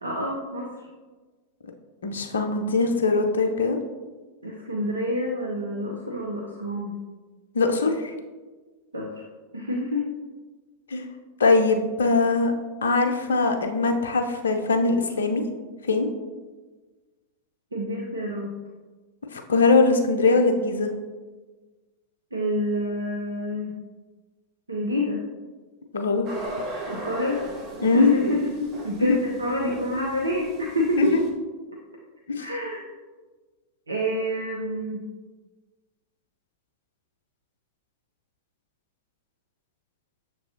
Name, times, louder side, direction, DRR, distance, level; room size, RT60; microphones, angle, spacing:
voice 1, 0.0-0.9 4.4-7.0 8.9-9.2 9.5-10.0 17.7-18.6 22.3-23.7 24.7-25.2 26.9-27.4 27.9-28.5 28.8-31.1 32.4-32.8 33.9-35.0, left 1 dB, 75° right, -1 dB, 0.5 m, -28 dB
voice 2, 2.0-3.8 7.5-8.1 10.9-11.1 11.4-12.5 12.8-15.4 15.9-16.1 19.3-20.9 25.9-26.3 27.8-28.3 29.1-29.2 31.0-31.2 32.3-32.5, left 3 dB, 70° left, 5 dB, 0.5 m, -21 dB
sound 1, 26.3-31.3, right 2 dB, 35° right, 0.8 m, -38 dB
6.6 x 3.0 x 2.6 m, 1.3 s
figure-of-eight pair, 90°, 0 cm